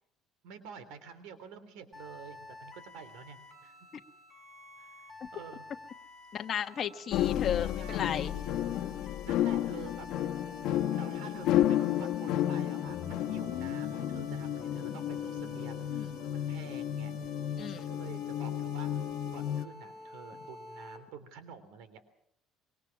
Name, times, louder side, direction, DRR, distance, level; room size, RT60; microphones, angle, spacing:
voice 1, 0.4-3.7 4.8-4.9 5.3-5.6 7.6-10.1 11.0-17.1 17.5-18.9 19.3-22.0, right 6 dB, 85° right, 12 dB, 3.3 m, -49 dB
sound 1, 1.9-21.0, left 1 dB, 15° right, 6.0 m, -50 dB
voice 2, 6.3-8.3 9.6-9.8 14.8-15.0 15.9-16.2 17.6-17.9, left 9 dB, 40° left, 6 dB, 1.3 m, -35 dB
sound 2, 7.1-19.6, left 12 dB, 70° left, 1.3 m, -32 dB
sound 3, 13.8-20.5, right 4 dB, 60° right, 7.1 m, -59 dB
25.5 x 23.5 x 6.0 m, 0.67 s
cardioid pair, 145°, 0 cm